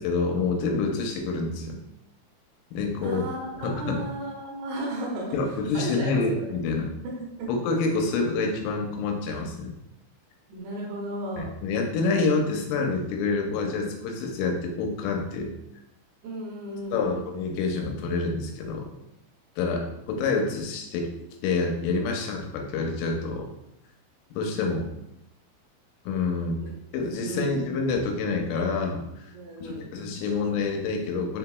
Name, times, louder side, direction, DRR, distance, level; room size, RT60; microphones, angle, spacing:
voice 1, 0.0-1.8 2.7-3.2 3.6-4.1 5.3-6.9 7.5-9.8 11.4-15.5 16.9-18.9 19.6-21.1 21.4-23.5 24.4-24.9 26.1-26.6 26.9-29.3 29.6-31.4, left 4 dB, 85° left, 2 dB, 3.1 m, -27 dB
voice 2, 3.0-5.4 5.7-6.4 6.7-7.5 10.5-11.5 16.2-17.3 26.6-26.7 27.2-27.5 29.3-29.8, right 1 dB, 80° right, -2 dB, 3.0 m, -34 dB
7.0 x 2.9 x 2.2 m, 0.84 s
omnidirectional pair, 5.6 m